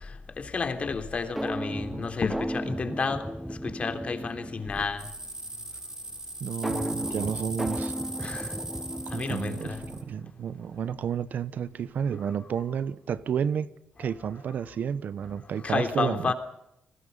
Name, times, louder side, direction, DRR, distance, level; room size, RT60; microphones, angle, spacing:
voice 1, 0.4-3.3 3.6-5.0 8.2-8.5 9.1-9.8 15.6-16.3, left 4 dB, 40° left, 3.4 m, -30 dB
sound 1, 1.4-5.1 6.6-10.2, equal, 5° right, 0.8 m, -35 dB
sound 2, 5.0-10.0, right 2 dB, 20° right, 4.4 m, -39 dB
voice 2, 6.4-7.9 9.1-9.7 10.0-13.7 14.0-16.3, right 8 dB, 65° right, 1.1 m, -31 dB
29.0 x 20.0 x 5.5 m
cardioid pair, 80°, 3 cm